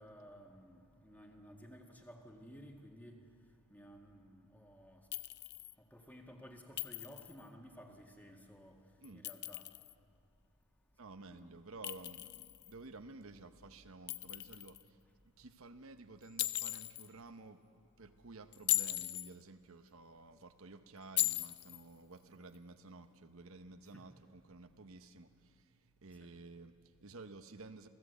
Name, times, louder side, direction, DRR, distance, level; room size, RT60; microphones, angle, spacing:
voice 1, 0.0-3.2 3.7-5.1 5.8-8.8 9.1-9.7 11.3-11.5 23.9-24.0 26.2-26.3, equal, 5° left, 2 dB, 1.9 m, -55 dB
Chink clink, 5.1-5.7 6.8-7.4 9.0-9.9 11.8-12.7 14.1-14.8 16.4-17.1 18.5-19.3 21.2-21.8, left 16 dB, 50° left, 0.5 m, -37 dB
voice 2, 11.0-27.9, right 3 dB, 65° right, 8 dB, 0.9 m, -53 dB
28.0 x 16.0 x 8.1 m, 2.4 s
head